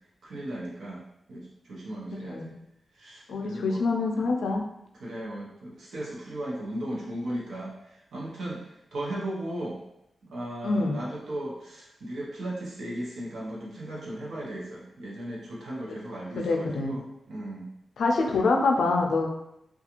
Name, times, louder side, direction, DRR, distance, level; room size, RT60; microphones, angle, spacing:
voice 1, 0.2-1.0 1.3-2.6 2.9-3.8 4.9-9.8 10.3-17.7 18.3-18.5, right 1 dB, 80° right, -4 dB, 0.7 m, -36 dB
voice 2, 3.3-4.6 10.6-11.0 16.4-17.0 18.0-19.3, left 3 dB, 85° left, 2 dB, 0.4 m, -25 dB
2.5 x 2.3 x 2.8 m, 0.80 s
wide cardioid pair, 175°, 0 cm